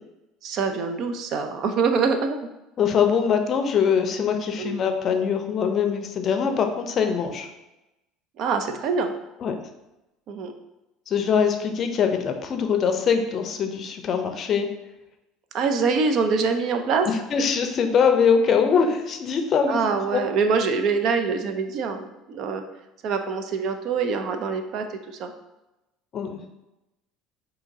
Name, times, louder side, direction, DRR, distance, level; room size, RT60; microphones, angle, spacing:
voice 1, 0.4-2.4 4.6-4.8 8.4-9.1 10.3-10.5 15.5-17.1 19.7-22.6 23.0-25.3, right 5 dB, 55° right, 6 dB, 0.4 m, -24 dB
voice 2, 2.8-7.5 9.4-9.6 11.1-14.7 17.1-20.2 26.1-26.4, left 6 dB, 45° left, 6 dB, 0.5 m, -23 dB
4.9 x 2.7 x 2.7 m, 0.95 s
supercardioid pair, 105°, 0 cm